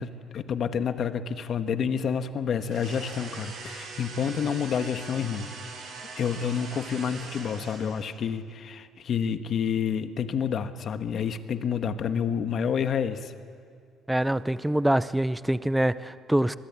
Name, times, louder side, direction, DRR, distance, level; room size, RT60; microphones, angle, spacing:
voice 1, 0.0-5.5 6.2-13.3, left 7 dB, 50° left, 9 dB, 1.3 m, -29 dB
sound 1, 2.6-8.2, right 4 dB, 60° right, 6.2 m, -42 dB
voice 2, 14.1-16.6, right 1 dB, 5° right, 15 dB, 0.6 m, -25 dB
25.0 x 21.0 x 8.4 m, 2.4 s
cardioid pair, 120°, 0 cm